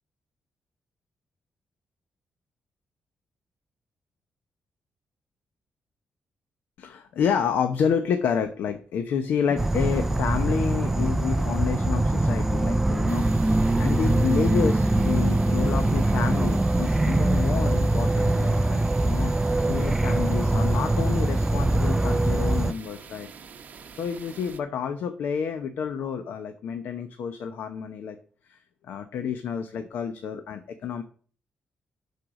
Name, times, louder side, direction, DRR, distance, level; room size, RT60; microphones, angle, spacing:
voice 1, 6.8-23.3 24.0-28.2 28.5-28.6 28.8-31.0, left 7 dB, 80° left, 8 dB, 0.9 m, -29 dB
Insect / Frog, 9.6-22.7, right 2 dB, 10° right, 0.4 m, -23 dB
sound 1, 13.1-24.6, right 6 dB, 50° right, 1.0 m, -46 dB
12.0 x 4.7 x 6.3 m, 0.43 s
cardioid pair, 135°, 3 cm